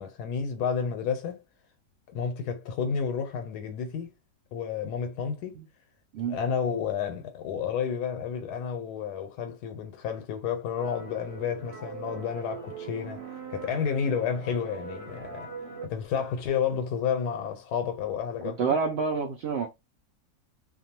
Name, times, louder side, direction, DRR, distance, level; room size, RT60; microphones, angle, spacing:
voice 1, 0.0-1.4 2.1-4.1 4.5-5.6 6.3-15.5 15.8-18.8, left 7 dB, 90° left, 1.1 m, -31 dB
sound 1, 10.8-15.9, right 5 dB, 50° right, 1.0 m, -41 dB
voice 2, 18.4-19.7, right 5 dB, 75° right, 0.6 m, -28 dB
2.6 x 2.2 x 2.8 m
omnidirectional pair, 1.6 m